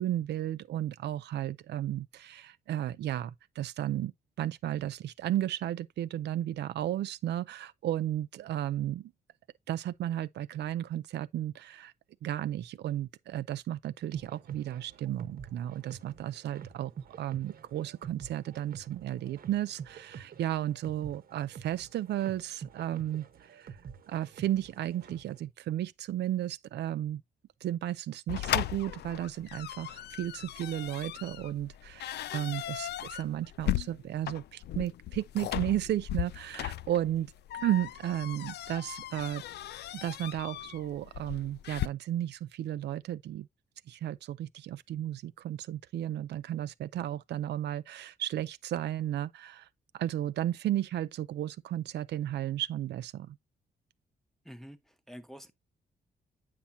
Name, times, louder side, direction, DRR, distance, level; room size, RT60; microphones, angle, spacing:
voice 1, 0.0-4.1 4.4-9.1 9.7-11.9 12.2-16.9 17.2-23.7 24.1-27.2 27.6-39.4 39.9-43.5 43.9-49.7 49.9-53.4, right 12 dB, 85° right, 0.5 m, -34 dB
sound 1, 14.1-25.4, right 7 dB, 60° right, 1.1 m, -48 dB
sound 2, 28.3-41.9, left 12 dB, 75° left, 0.4 m, -37 dB
voice 2, 54.4-55.5, equal, ahead, 0.9 m, -48 dB
8.5 x 5.8 x 2.7 m
cardioid pair, 115°, 17 cm